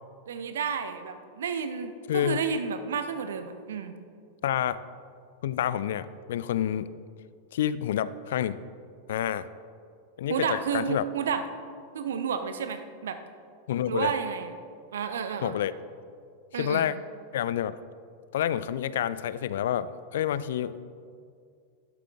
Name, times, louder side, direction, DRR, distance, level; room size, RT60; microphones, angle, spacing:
voice 1, 0.3-4.0 10.3-11.4 11.9-13.2 13.9-14.5 14.9-15.6 16.5-16.9, right 6 dB, 65° right, 9 dB, 0.8 m, -31 dB
voice 2, 2.1-2.4 4.4-4.8 5.4-6.9 7.5-8.6 9.1-9.5 10.2-11.0 13.7-14.1 15.4-15.7 16.5-17.0 17.3-17.8 18.3-20.7, left 10 dB, 60° left, 16 dB, 0.4 m, -28 dB
12.5 x 11.0 x 3.5 m, 2.2 s
figure-of-eight pair, 90°, 0 cm